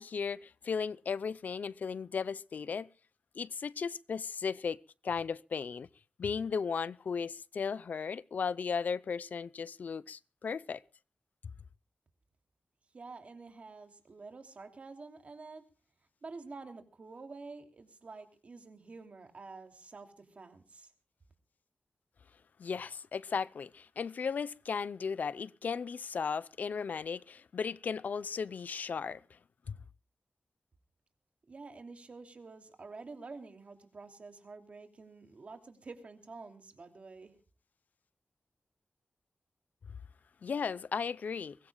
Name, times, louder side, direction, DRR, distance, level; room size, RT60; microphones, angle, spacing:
voice 1, 0.0-2.9 3.4-5.9 6.2-10.8 22.6-29.2 29.7-29.8 40.4-41.6, left 6 dB, 75° left, 0.6 m, -36 dB
voice 2, 12.9-15.6 16.2-20.9 31.5-37.3, right 3 dB, 50° right, 3.0 m, -49 dB
23.5 x 20.5 x 2.3 m
wide cardioid pair, 120°, 3 cm